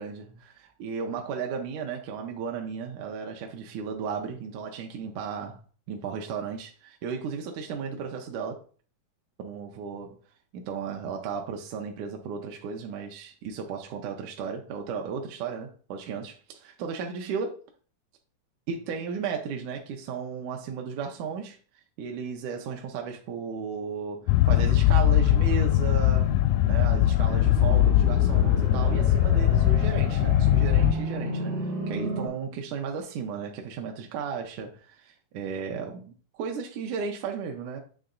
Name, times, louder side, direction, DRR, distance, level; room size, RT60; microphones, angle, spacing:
voice 1, 0.0-5.6 5.9-8.6 9.4-10.2 10.5-17.6 18.7-21.6 22.0-26.4 26.6-37.8, right 6 dB, 75° right, 2.1 m, -35 dB
sound 1, 24.3-30.9, left 13 dB, 80° left, 1.8 m, -21 dB
sound 2, 27.3-32.3, equal, 50° right, 1.0 m, -31 dB
9.0 x 3.2 x 3.8 m
omnidirectional pair, 3.7 m